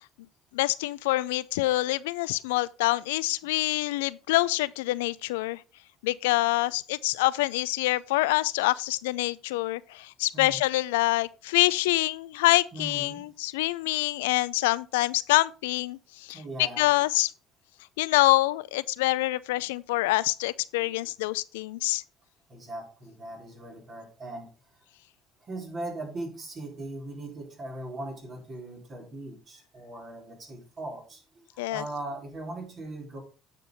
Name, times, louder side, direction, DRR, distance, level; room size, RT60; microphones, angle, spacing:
voice 1, 0.5-5.6 6.0-17.3 18.0-22.0 31.6-31.8, left 18 dB, 80° left, 0.4 m, -26 dB
voice 2, 12.7-13.3 16.3-16.9 22.5-24.5 25.4-33.2, right 2 dB, 45° right, 4.6 m, -39 dB
8.9 x 6.0 x 5.1 m
hypercardioid pair, 65°, 0 cm